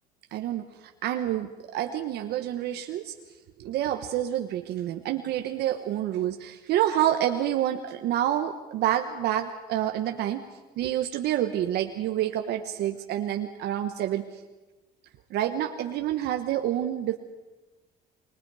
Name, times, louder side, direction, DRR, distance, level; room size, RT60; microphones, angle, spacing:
voice 1, 0.3-3.1 3.6-10.4 10.8-14.3 15.3-17.2, right 12 dB, 80° right, 5 dB, 1.2 m, -28 dB
29.0 x 21.5 x 4.9 m, 1.2 s
cardioid pair, 110°, 17 cm